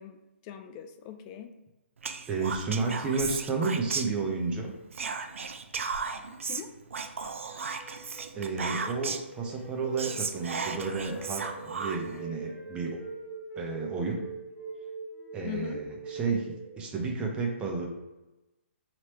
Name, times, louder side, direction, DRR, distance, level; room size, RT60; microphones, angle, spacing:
voice 1, 0.0-1.5 6.4-6.7 15.4-15.8, left 9 dB, 30° left, 7 dB, 0.3 m, -41 dB
Whispering, 2.0-4.5 4.9-9.3 9.7-9.8 10.0-12.2, right 5 dB, 80° right, 0.4 m, -35 dB
voice 2, 2.3-4.7 8.3-13.0 13.6-14.2 15.3-17.9, right 4 dB, 15° right, 1 dB, 0.6 m, -32 dB
sound 1, 7.0-16.9, right 5 dB, ahead, 1.3 m, -43 dB
Wind instrument woodwind instrument, 7.8-11.6 11.9-15.5 15.8-16.3, left 4 dB, 45° left, 0.8 m, -54 dB
3.1 x 3.0 x 2.9 m, 1.0 s
hypercardioid pair, 140°, 7 cm